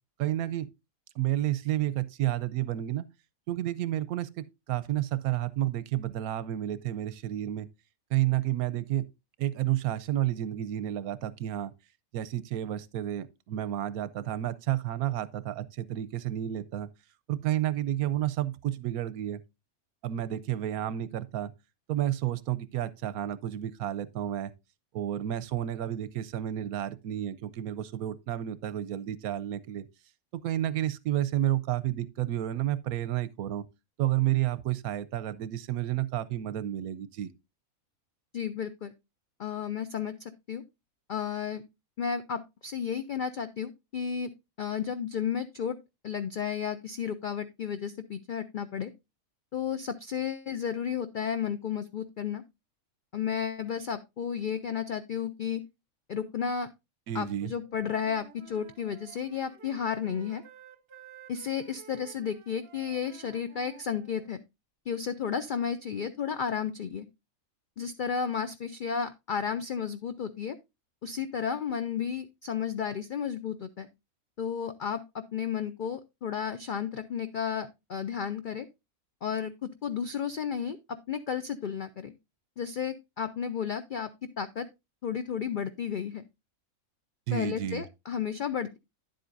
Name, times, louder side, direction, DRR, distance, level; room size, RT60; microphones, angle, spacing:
voice 1, 0.2-0.7 1.2-3.0 3.5-7.7 8.1-9.1 9.4-11.7 12.1-16.9 17.3-19.4 20.0-21.5 21.9-24.5 24.9-29.9 30.4-33.6 34.0-37.3 57.1-57.5 87.3-87.8, right 13 dB, 90° right, 1.1 m, -31 dB
voice 2, 38.3-38.9 39.4-40.6 41.1-41.6 42.0-44.3 44.6-45.8 46.0-48.9 49.5-52.4 53.1-55.6 56.1-56.7 57.1-60.4 61.3-64.4 64.9-67.1 67.8-70.6 71.0-73.9 74.4-78.7 79.2-80.8 81.1-82.1 82.6-84.1 84.4-84.7 85.0-86.2 87.3-88.8, left 7 dB, 85° left, 0.4 m, -33 dB
Wind instrument woodwind instrument, 57.6-64.4, right 8 dB, 50° right, 0.8 m, -53 dB
10.0 x 7.8 x 2.5 m
omnidirectional pair, 1.5 m